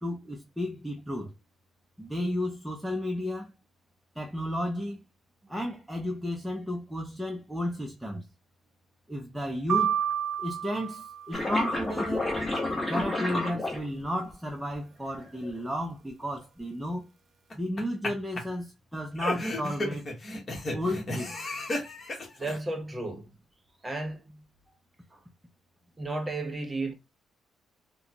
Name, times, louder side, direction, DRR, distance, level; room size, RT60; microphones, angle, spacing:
voice 1, 0.0-1.3 2.0-3.5 4.2-5.0 5.5-8.2 9.1-10.0 10.4-12.4 12.9-17.1 17.5-20.1 20.7-21.3, equal, 5° right, 0.7 m, -33 dB
sound 1, 9.7-11.8, right 9 dB, 55° right, 0.4 m, -30 dB
sound 2, 11.3-14.3 15.1-15.6, left 2 dB, 15° left, 1.2 m, -30 dB
sound 3, 17.5-18.1 18.4-18.5 19.2-22.6, left 1 dB, 35° left, 1.4 m, -33 dB
voice 2, 22.4-23.3 23.8-24.4 25.1-25.2 26.0-26.9, right 2 dB, 20° right, 1.1 m, -33 dB
3.7 x 2.2 x 2.9 m
cardioid pair, 90°, 0 cm